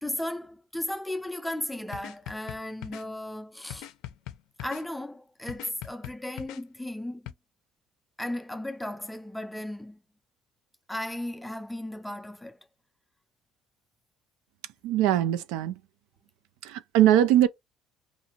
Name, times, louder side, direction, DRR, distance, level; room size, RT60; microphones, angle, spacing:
voice 1, 0.0-3.9 4.6-7.3 8.2-10.0 10.9-12.6, left 1 dB, 5° left, 0.4 m, -35 dB
sound 1, 1.9-3.0 3.7-4.9 5.5-6.6 7.3-7.4, left 13 dB, 75° left, 0.4 m, -40 dB
voice 2, 14.8-15.8 16.6-17.5, right 12 dB, 90° right, 0.3 m, -21 dB
2.7 x 2.5 x 2.9 m
cardioid pair, 115°, 0 cm